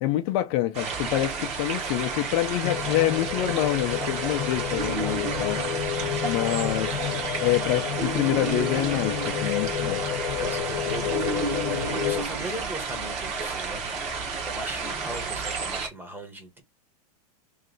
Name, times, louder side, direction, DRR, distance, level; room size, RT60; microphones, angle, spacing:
voice 1, 0.0-5.6 6.2-6.9 7.4-10.0, left 14 dB, 45° left, 0.6 m, -26 dB
sound 1, 0.7-15.9, right 5 dB, 35° right, 1.3 m, -32 dB
sound 2, 2.6-12.2, left 11 dB, 75° left, 0.8 m, -31 dB
sound 3, 4.7-6.4 8.0-10.1 11.1-13.2, right 3 dB, 70° right, 0.8 m, -35 dB
voice 2, 10.4-13.9 14.4-16.6, right 1 dB, 10° right, 1.1 m, -38 dB
3.2 x 2.7 x 3.9 m
supercardioid pair, 145°, 19 cm